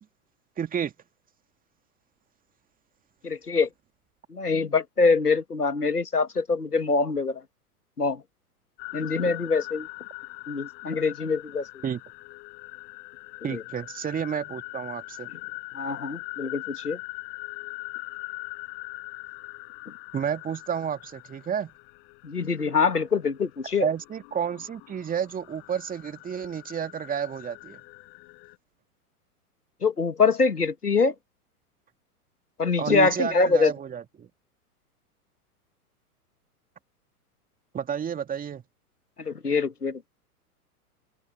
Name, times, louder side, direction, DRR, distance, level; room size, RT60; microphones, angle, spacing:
voice 1, 0.6-0.9 11.8-12.0 13.4-15.3 20.1-21.7 23.8-27.8 32.8-34.3 37.7-38.6, right 8 dB, 20° right, 2.5 m, -31 dB
voice 2, 3.2-3.7 4.3-7.4 8.0-8.2 8.9-9.9 10.5-11.7 13.5-13.6 15.7-17.0 22.2-23.9 29.8-31.1 32.6-33.7 39.2-40.1, left 4 dB, 85° left, 2.0 m, -24 dB
sound 1, 8.8-28.6, left 32 dB, 45° left, 6.1 m, -42 dB
figure-of-eight pair, 95°, 45 cm